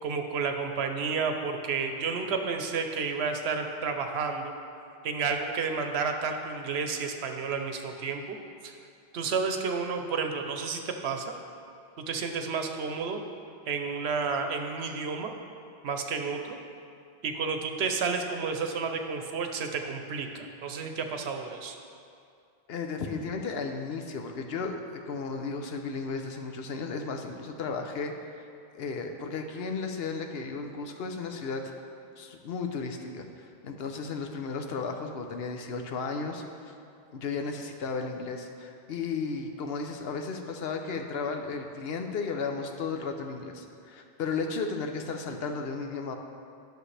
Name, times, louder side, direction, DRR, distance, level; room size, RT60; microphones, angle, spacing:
voice 1, 0.0-4.5 5.0-8.4 8.6-8.8 9.1-11.2 12.0-13.2 13.7-15.3 15.8-16.6 17.2-21.8, right 5 dB, 75° right, 5 dB, 1.0 m, -31 dB
voice 2, 22.7-28.5 28.7-31.7 32.2-36.7 37.1-46.2, left 4 dB, 70° left, 4 dB, 0.9 m, -34 dB
11.0 x 6.5 x 3.3 m, 2.4 s
omnidirectional pair, 1.1 m